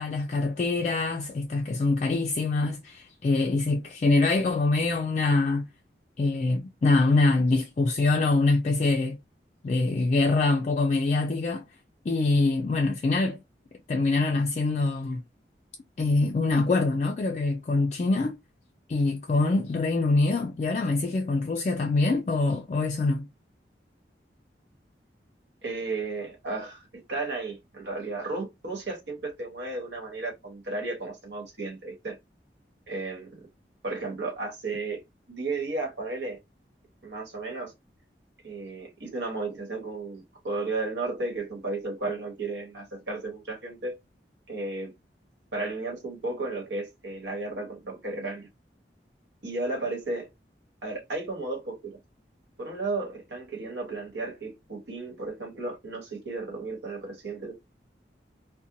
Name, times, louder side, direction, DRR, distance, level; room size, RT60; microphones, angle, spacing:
voice 1, 0.0-5.6 6.2-9.2 9.6-11.6 12.1-13.4 13.9-15.2 16.0-18.4 18.9-23.3, left 3 dB, 40° left, 0.3 m, -24 dB
voice 2, 25.6-32.2 32.9-33.5 33.8-35.0 35.3-36.4 37.0-37.7 38.4-44.0 44.5-44.9 45.5-48.5 49.4-50.3 50.8-52.0 52.6-57.5, right 3 dB, 85° right, 1.2 m, -34 dB
2.8 x 2.1 x 2.5 m
head